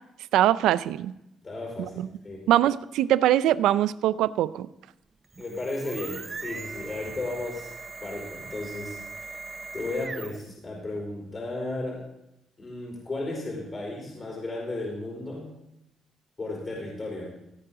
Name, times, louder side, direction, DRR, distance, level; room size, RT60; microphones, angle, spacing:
voice 1, 0.3-1.1 2.5-4.7, right 12 dB, 85° right, 17 dB, 0.4 m, -22 dB
voice 2, 1.4-1.9 2.2-2.4 5.4-7.7 8.0-9.0 9.7-12.0 12.6-15.5 16.4-17.3, left 2 dB, 30° left, -3 dB, 4.6 m, -34 dB
sound 1, 5.2-10.5, right 4 dB, 30° right, 0.6 m, -40 dB
16.5 x 9.4 x 3.7 m, 0.86 s
cardioid pair, 90°, 0 cm